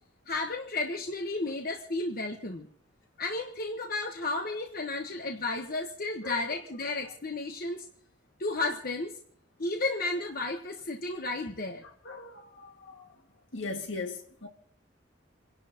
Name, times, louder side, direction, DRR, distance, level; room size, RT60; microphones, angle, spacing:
voice 1, 0.3-2.7 3.2-7.9 8.4-9.1 9.6-11.8, left 2 dB, 50° left, 1.2 m, -33 dB
voice 2, 12.1-13.1 13.5-14.5, left 3 dB, 70° left, 2.0 m, -39 dB
28.5 x 11.0 x 2.9 m
head